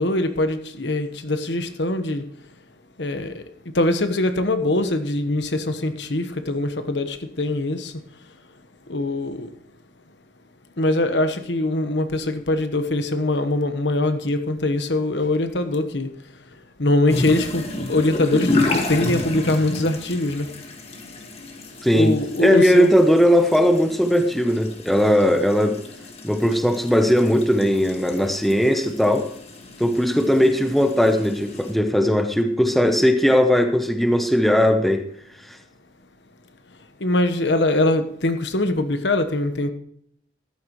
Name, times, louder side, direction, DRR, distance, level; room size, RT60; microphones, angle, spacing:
voice 1, 0.0-2.2 3.0-3.4 3.7-7.9 8.9-9.5 10.8-16.1 16.8-20.5 21.9-23.0 37.0-39.7, left 2 dB, 70° left, 1.1 m, -22 dB
sound 1, 17.1-31.7, left 2 dB, 35° left, 1.8 m, -31 dB
voice 2, 21.8-22.1 22.4-25.8 26.2-29.3 29.8-35.0, equal, ahead, 0.8 m, -18 dB
14.0 x 12.0 x 3.1 m
head